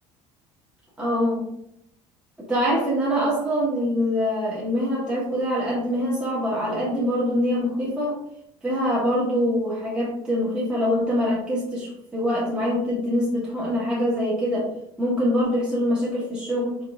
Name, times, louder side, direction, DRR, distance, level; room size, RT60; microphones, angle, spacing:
voice 1, 1.0-1.4 2.5-8.2 8.6-14.7 15.0-16.8, equal, 10° right, -7 dB, 1.4 m, -24 dB
3.8 x 3.6 x 2.4 m, 0.75 s
cardioid pair, 120°, 12 cm